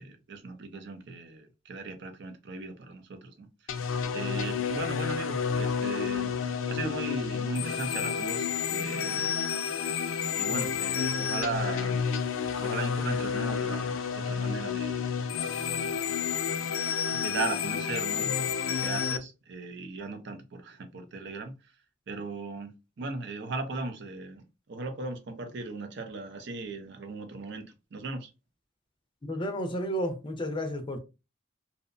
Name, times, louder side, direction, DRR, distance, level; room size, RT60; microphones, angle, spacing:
voice 1, 0.0-6.3 6.7-9.3 10.4-12.1 12.6-15.2 17.1-21.5 22.1-24.4 24.7-28.3, right 3 dB, 60° right, 0.5 m, -37 dB
sound 1, 3.7-19.2, left 6 dB, 80° left, 0.4 m, -30 dB
voice 2, 29.2-31.0, equal, 25° left, 0.4 m, -32 dB
2.6 x 2.0 x 2.5 m
head